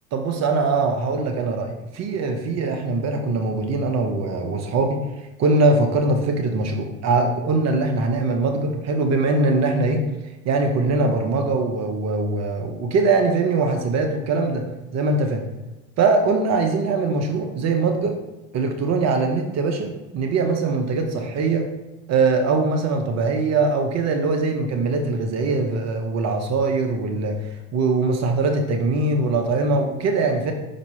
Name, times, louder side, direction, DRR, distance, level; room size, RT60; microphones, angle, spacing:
voice 1, 0.1-14.7 14.9-15.4 16.0-18.2 18.5-21.7 22.1-30.5, right 3 dB, 35° right, 4 dB, 0.9 m, -22 dB
5.8 x 5.2 x 4.2 m, 1.1 s
hypercardioid pair, 95°, 43 cm